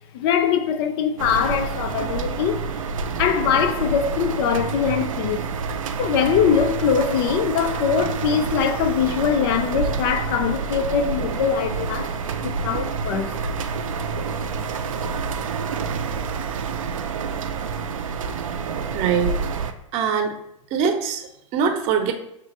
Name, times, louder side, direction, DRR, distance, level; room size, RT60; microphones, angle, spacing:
voice 1, 0.1-2.6 3.2-5.5 6.0-12.2 12.4-13.4, left 7 dB, 45° left, 0.4 m, -22 dB
sound 1, 1.2-19.7, right 5 dB, 70° right, 0.5 m, -28 dB
voice 2, 18.9-19.3 19.9-20.3 20.7-21.2 21.5-22.1, right 7 dB, 40° right, 0.7 m, -22 dB
6.2 x 2.4 x 2.9 m
figure-of-eight pair, 95°, 17 cm